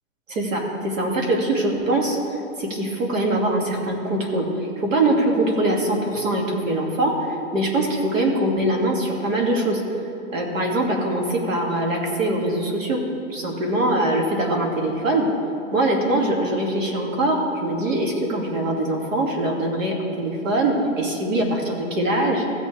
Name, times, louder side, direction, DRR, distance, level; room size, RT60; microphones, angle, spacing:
voice 1, 0.3-2.2 2.6-4.5 4.8-9.8 10.3-13.0 13.3-15.3 15.7-22.4, right 1 dB, 70° right, 0 dB, 2.4 m, -22 dB
15.5 x 7.4 x 3.4 m, 2.7 s
hypercardioid pair, 175°, 40 cm